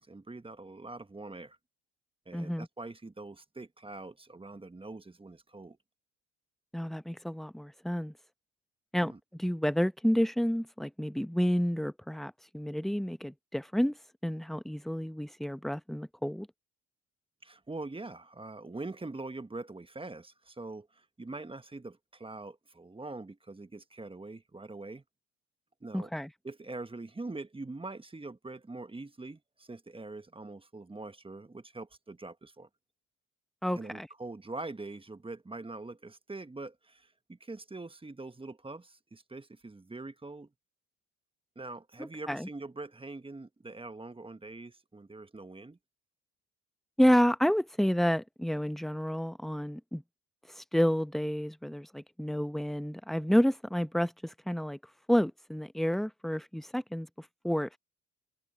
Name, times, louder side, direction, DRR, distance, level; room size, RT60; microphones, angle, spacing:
voice 1, 0.0-1.6 2.2-5.8 9.0-9.2 17.4-25.0 25.8-26.1 26.4-32.7 33.8-40.5 41.5-45.8, right 2 dB, 15° right, 1.5 m, -43 dB
voice 2, 2.3-2.7 6.7-8.1 8.9-14.0 14.2-16.5 25.9-26.3 33.6-34.1 42.0-42.5 47.0-50.0 50.5-54.8 55.1-57.1 57.4-57.8, equal, ahead, 1.0 m, -30 dB
hypercardioid pair, 55°, 35 cm